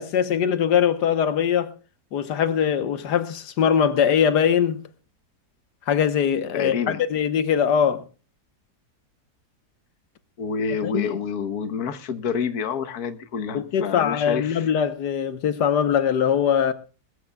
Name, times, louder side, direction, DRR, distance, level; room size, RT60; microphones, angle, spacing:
voice 1, 0.0-1.7 2.1-4.8 5.9-6.8 7.1-8.0 10.8-11.2 13.5-16.7, left 8 dB, 85° left, 1.6 m, -21 dB
voice 2, 6.5-7.0 10.4-14.7, left 6 dB, 65° left, 1.6 m, -28 dB
21.5 x 14.5 x 2.3 m
omnidirectional pair, 1.7 m